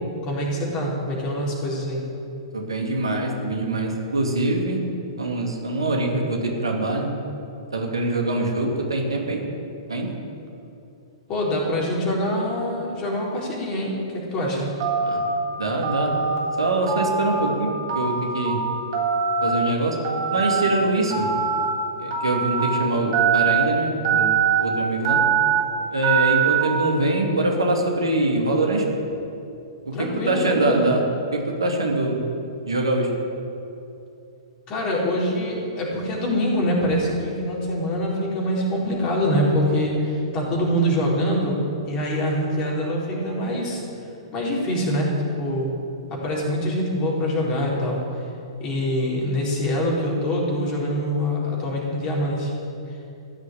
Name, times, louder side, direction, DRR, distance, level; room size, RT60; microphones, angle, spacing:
voice 1, 0.2-2.0 11.3-14.7 29.9-30.9 34.7-43.8 44.3-45.7 46.1-48.0 48.6-52.5, equal, 30° left, -4 dB, 4.1 m, -24 dB
voice 2, 2.5-4.8 5.2-7.1 7.7-9.4 9.9-10.1 15.0-15.2 15.6-16.1 16.6-18.6 19.4-20.0 20.3-21.3 22.0-24.3 24.6-25.2 25.9-28.8 29.8-31.0 31.3-32.2 32.7-33.1, right 2 dB, 75° right, 1 dB, 2.5 m, -24 dB
Telephone, 14.8-15.3 15.8-16.4 16.9-17.5 17.9-18.5 18.9-19.5 20.0-20.6 21.1-21.7 22.1-22.6 23.1-23.6 24.0-24.6 25.0-25.6 26.0-26.6, right 7 dB, 50° right, 3.6 m, -22 dB
15.0 x 6.6 x 9.9 m, 2.7 s
figure-of-eight pair, 110°, 3 cm